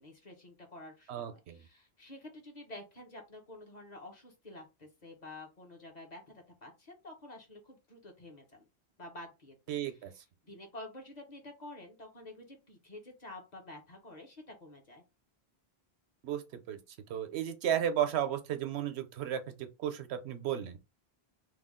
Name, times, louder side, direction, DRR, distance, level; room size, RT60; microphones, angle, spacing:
voice 1, 0.0-6.2 6.6-8.7 9.0-9.6 9.9-10.0 10.4-15.0, left 1 dB, 45° left, 1.0 m, -49 dB
voice 2, 1.1-1.6 9.7-10.1 16.2-16.8 17.1-20.8, right 10 dB, 80° right, 0.9 m, -34 dB
3.3 x 2.3 x 3.6 m
omnidirectional pair, 1.1 m